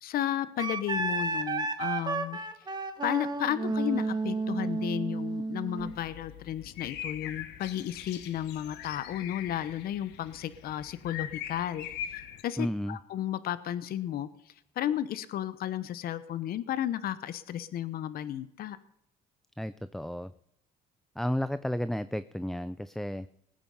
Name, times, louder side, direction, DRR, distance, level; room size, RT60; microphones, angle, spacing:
voice 1, 0.0-2.4 3.0-18.8, left 11 dB, 65° left, 15 dB, 0.9 m, -33 dB
Wind instrument woodwind instrument, 0.6-6.0, right 3 dB, 25° right, 1.5 m, -32 dB
sound 1, 5.8-12.4, left 10 dB, 90° left, 1.2 m, -42 dB
voice 2, 12.6-13.0 19.6-20.3 21.2-23.3, equal, ahead, 14 dB, 0.5 m, -32 dB
20.0 x 9.1 x 5.6 m, 0.76 s
cardioid pair, 110°, 17 cm